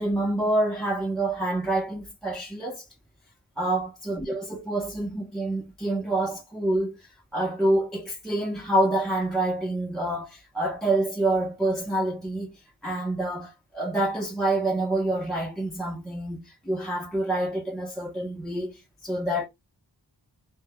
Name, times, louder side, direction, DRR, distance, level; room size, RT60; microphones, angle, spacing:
voice 1, 0.0-2.9 3.6-12.5 12.8-19.5, right 1 dB, ahead, 0.6 m, -27 dB
2.2 x 2.1 x 3.3 m
wide cardioid pair, 65°, 41 cm